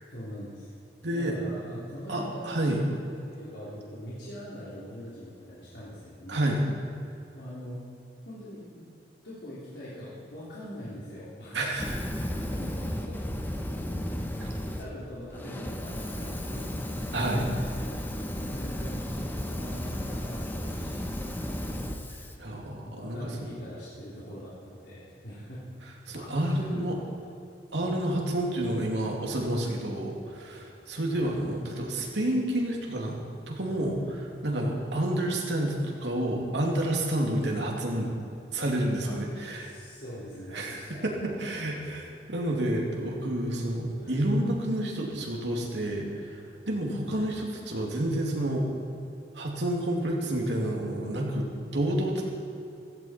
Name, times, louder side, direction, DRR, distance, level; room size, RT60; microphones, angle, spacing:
voice 1, 0.1-0.7 1.1-2.5 3.1-6.5 7.3-7.8 8.2-8.9 9.2-11.6 12.4-13.4 13.7-14.1 14.8-16.8 17.0-18.0 18.4-21.1 22.9-25.7 26.1-26.8 27.8-28.0 31.1-31.3 37.9-38.0 39.0-39.2 39.6-41.9 43.9-44.2 47.1-47.3, equal, 75° left, -10 dB, 3.4 m, -43 dB
voice 2, 1.0-1.3 2.1-2.8 6.3-6.6 11.5-12.0 14.4-14.5 17.1-17.4 22.4-23.2 26.1-27.0 27.7-33.2 33.5-38.1 38.5-39.7 40.5-46.4 46.7-48.7 49.3-52.2, right 1 dB, 90° right, -1 dB, 2.6 m, -29 dB
Fire, 11.7-14.9 15.3-22.3, equal, 10° left, 0.9 m, -34 dB
16.0 x 16.0 x 4.4 m, 2.6 s
head